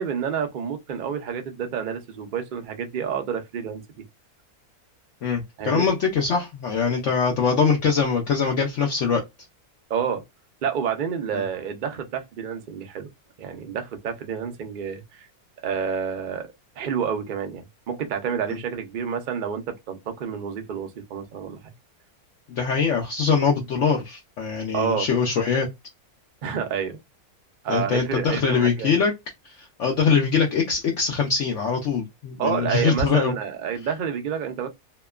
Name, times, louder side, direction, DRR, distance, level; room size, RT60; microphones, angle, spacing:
voice 1, 0.0-3.8 5.6-5.9 9.9-10.2 10.6-13.1 13.4-15.3 15.6-16.5 16.8-21.7 24.7-25.1 26.4-27.0 27.6-28.9 32.4-34.7, right 7 dB, 75° right, 0.4 m, -29 dB
voice 2, 5.2-9.2 11.3-11.4 22.6-25.7 27.7-29.1 29.4-33.3, left 5 dB, 65° left, 0.9 m, -23 dB
2.8 x 2.1 x 2.3 m
omnidirectional pair, 1.6 m